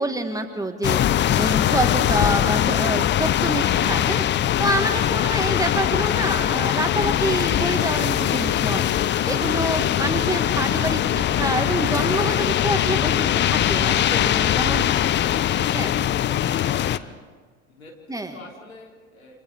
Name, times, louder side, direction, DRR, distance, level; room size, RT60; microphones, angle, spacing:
voice 1, 0.0-4.2 4.6-8.9 9.3-14.8 15.7-15.9 18.1-18.3, right 1 dB, 10° right, 6 dB, 2.0 m, -27 dB
sound 1, 0.8-17.0, left 11 dB, 25° left, 0.6 m, -21 dB
sound 2, 7.8-15.4, left 5 dB, 60° left, 4.5 m, -45 dB
voice 2, 17.7-19.4, left 3 dB, 80° left, 0 dB, 3.6 m, -46 dB
29.0 x 27.5 x 3.7 m, 1.4 s
figure-of-eight pair, 70°, 41 cm